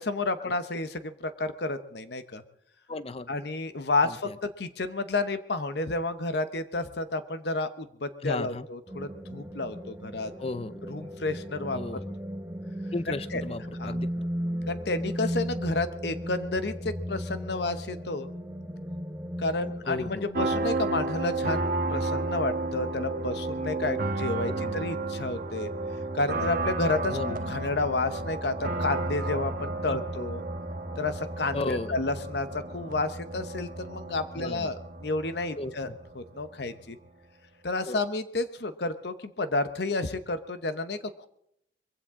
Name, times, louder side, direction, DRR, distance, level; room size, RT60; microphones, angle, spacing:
voice 1, 0.0-2.4 3.3-10.3 10.9-11.8 13.3-13.4 13.8-13.9 14.7-18.3 19.4-25.7 26.1-30.4 31.0-35.9 36.1-37.0 37.6-41.3, left 2 dB, 60° left, 10 dB, 0.9 m, -31 dB
voice 2, 2.9-3.3 4.0-4.4 8.2-8.7 10.4-10.8 11.7-12.1 12.9-14.3 19.9-20.5 24.6-24.7 27.1-27.4 29.9-30.0 31.5-32.0 34.4-34.7 35.6-36.0 37.9-38.0, left 2 dB, 30° left, 15 dB, 0.5 m, -35 dB
sound 1, 8.9-20.3, equal, 10° right, 0.9 m, -36 dB
sound 2, 20.3-36.8, right 2 dB, 50° right, 1.1 m, -32 dB
22.0 x 16.0 x 3.7 m, 0.75 s
head